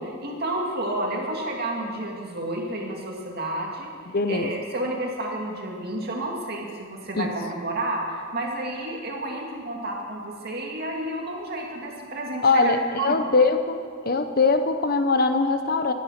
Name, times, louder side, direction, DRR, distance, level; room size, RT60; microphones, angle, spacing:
voice 1, 0.0-3.9 4.3-13.2, right 1 dB, 50° right, 0 dB, 2.3 m, -31 dB
voice 2, 4.1-4.5 7.2-7.3 12.4-13.8 14.0-15.9, left 3 dB, 45° left, 8 dB, 0.9 m, -21 dB
14.5 x 10.5 x 6.0 m, 2.2 s
head